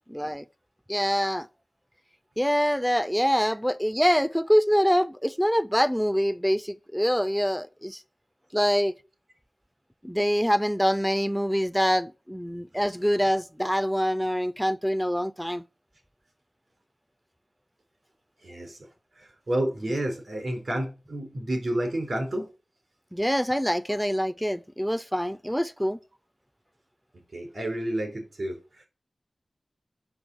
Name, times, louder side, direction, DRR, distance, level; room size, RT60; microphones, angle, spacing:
voice 1, 0.1-0.4 0.9-1.5 2.4-8.0 8.5-8.9 10.0-15.6 23.1-26.0, equal, ahead, 0.3 m, -25 dB
voice 2, 18.4-18.8 19.2-22.5 27.3-28.9, right 1 dB, 70° right, 3.9 m, -30 dB
7.8 x 6.3 x 6.2 m
wide cardioid pair, 90°, 0 cm